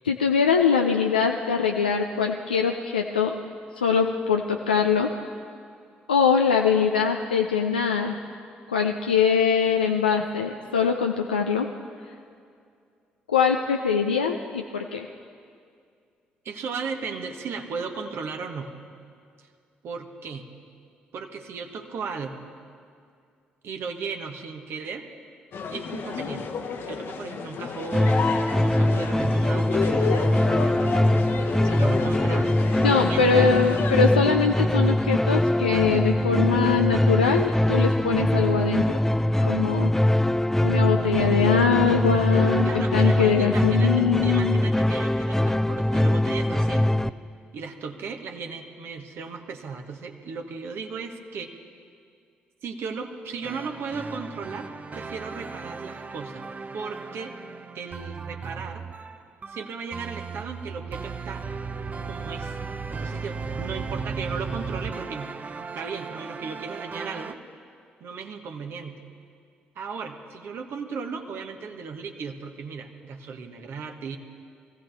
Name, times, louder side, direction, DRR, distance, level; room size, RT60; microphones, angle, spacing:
voice 1, 0.0-3.4 3.7-5.1 6.1-8.2 8.7-11.7 13.3-15.1 32.8-39.0 39.4-39.9 40.6-44.6, left 6 dB, 90° left, 2 dB, 0.4 m, -23 dB
voice 2, 16.4-18.7 19.8-20.5 21.1-22.5 23.6-25.0 25.7-26.5 26.8-31.2 31.6-32.5 33.1-33.4 42.6-43.9 44.2-46.9 47.5-51.5 52.6-56.5 56.7-57.3 57.7-58.8 59.5-61.4 62.0-62.5 62.9-65.3 65.7-67.4 68.0-69.0 69.7-74.2, right 5 dB, 55° right, 4 dB, 1.1 m, -36 dB
sound 1, 25.5-34.1, left 5 dB, 55° left, 1.1 m, -31 dB
sound 2, 27.9-47.1, left 1 dB, 5° left, 0.4 m, -22 dB
sound 3, 53.4-67.3, right 5 dB, 35° right, 0.7 m, -36 dB
23.0 x 15.0 x 3.4 m, 2.3 s
figure-of-eight pair, 45°, 5 cm